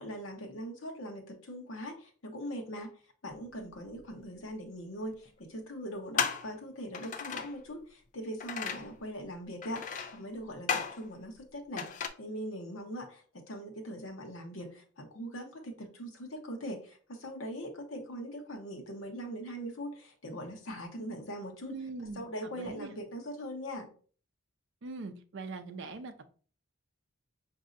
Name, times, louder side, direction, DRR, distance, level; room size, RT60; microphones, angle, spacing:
voice 1, 0.0-2.9 3.2-21.7 22.2-23.9, equal, 70° left, 3 dB, 0.8 m, -41 dB
sound 1, 4.1-4.2 5.1-5.3 6.2-6.6 6.9-7.6 8.4-8.9 9.6-10.2 10.7-11.1 11.8-12.1, left 6 dB, 35° left, 0.3 m, -34 dB
voice 2, 21.7-22.9 24.8-26.3, right 3 dB, 60° right, 8 dB, 0.5 m, -42 dB
5.0 x 2.6 x 2.5 m, 0.42 s
head